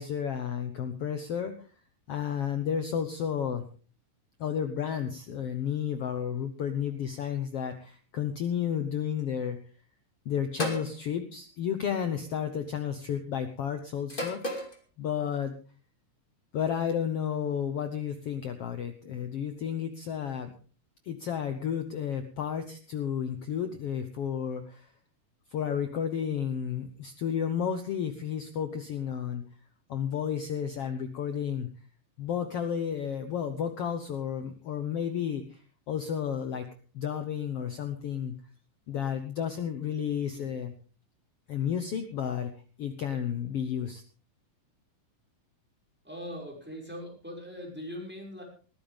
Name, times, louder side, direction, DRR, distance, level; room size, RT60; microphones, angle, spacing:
voice 1, 0.0-1.5 2.1-3.6 4.4-9.6 10.2-14.7 15.0-15.5 16.5-20.5 21.0-24.9 25.5-29.4 29.9-31.7 32.2-35.6 35.9-36.7 36.9-38.3 38.9-40.7 41.5-42.5 42.8-44.0, left 8 dB, 75° left, 8 dB, 1.4 m, -32 dB
sound 1, 10.6-10.9 12.1-12.4 14.1-14.8, left 1 dB, 15° left, 2.1 m, -33 dB
voice 2, 46.0-48.4, equal, 5° right, 1 dB, 5.3 m, -40 dB
20.5 x 14.0 x 3.5 m, 0.38 s
omnidirectional pair, 4.0 m